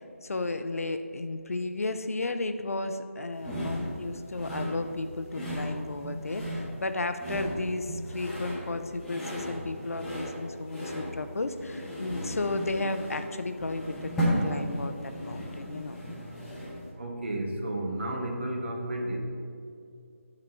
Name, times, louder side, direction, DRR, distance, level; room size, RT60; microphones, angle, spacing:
voice 1, 0.0-16.0, left 2 dB, 75° left, 9 dB, 0.5 m, -34 dB
sound 1, 3.4-16.9, equal, ahead, 0.8 m, -35 dB
voice 2, 17.0-19.2, right 1 dB, 50° right, 1 dB, 1.1 m, -32 dB
8.3 x 4.0 x 4.6 m, 2.4 s
figure-of-eight pair, 160°, 8 cm